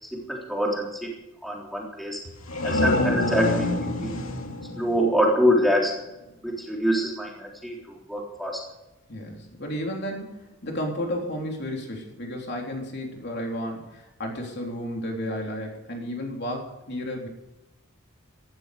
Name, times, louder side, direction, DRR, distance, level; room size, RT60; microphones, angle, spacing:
voice 1, 0.0-1.1 1.4-2.3 2.6-4.2 4.8-5.9 6.4-8.6, equal, ahead, -3 dB, 3.7 m, -25 dB
sound 1, 2.2-5.8, left 2 dB, 75° left, 2.6 m, -27 dB
voice 2, 9.1-17.3, equal, 50° left, 0 dB, 3.7 m, -32 dB
18.0 x 13.0 x 5.2 m, 0.96 s
head